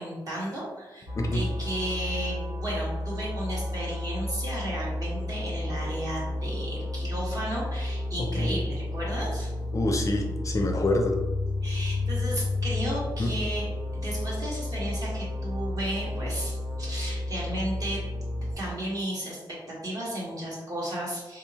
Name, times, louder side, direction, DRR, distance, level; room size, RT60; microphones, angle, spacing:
voice 1, 0.0-9.5 11.6-18.1 18.5-21.4, right 1 dB, 45° right, -5 dB, 1.3 m, -34 dB
sound 1, 1.1-18.5, left 2 dB, 75° right, 1.3 m, -31 dB
voice 2, 1.2-1.5 8.2-8.5 9.7-11.2 13.2-13.3, left 1 dB, 40° left, 2 dB, 0.4 m, -26 dB
3.8 x 2.7 x 2.8 m, 1.1 s
wide cardioid pair, 130°, 9 cm